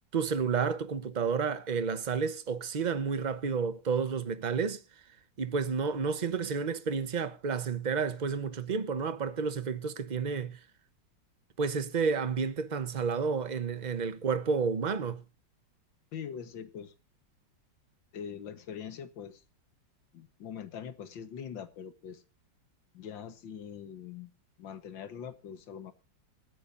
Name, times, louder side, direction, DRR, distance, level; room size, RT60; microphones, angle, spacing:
voice 1, 0.1-4.8 5.4-10.6 11.6-15.2, right 5 dB, 40° right, 0.6 m, -31 dB
voice 2, 16.1-16.9 18.1-19.4 20.1-22.2 22.9-24.3 24.6-25.9, left 8 dB, 85° left, 2.0 m, -42 dB
25.5 x 9.8 x 2.6 m
omnidirectional pair, 2.0 m